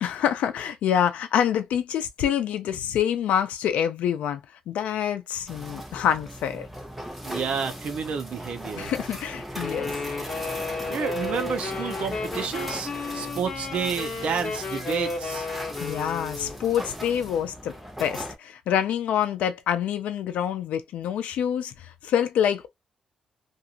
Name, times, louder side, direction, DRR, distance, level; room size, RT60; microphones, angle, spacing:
voice 1, 0.0-6.7 8.8-9.9 15.8-17.7 18.0-22.7, left 9 dB, 85° left, 0.5 m, -26 dB
sound 1, 5.5-18.4, equal, 5° right, 0.8 m, -38 dB
voice 2, 7.2-8.9 10.9-15.5, right 6 dB, 60° right, 0.6 m, -30 dB
Wind instrument woodwind instrument, 9.6-16.6, left 3 dB, 45° left, 1.1 m, -33 dB
2.6 x 2.4 x 2.8 m
cardioid pair, 120°, 2 cm